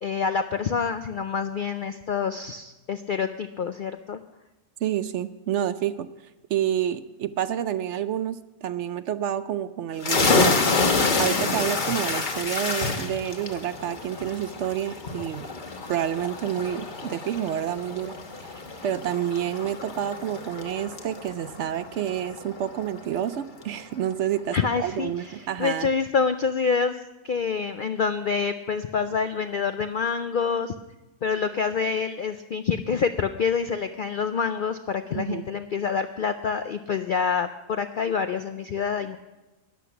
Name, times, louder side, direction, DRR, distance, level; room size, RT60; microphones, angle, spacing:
voice 1, 0.0-4.2 24.5-27.0 27.2-30.7 31.2-39.2, left 6 dB, 65° left, 9 dB, 0.5 m, -27 dB
voice 2, 4.8-6.1 6.5-10.6 11.1-15.5 15.9-25.9 35.1-35.5, right 10 dB, 65° right, 13 dB, 0.8 m, -29 dB
sound 1, 10.0-23.4, left 3 dB, 40° left, 1.2 m, -28 dB
13.5 x 10.0 x 5.8 m, 1.1 s
omnidirectional pair, 1.4 m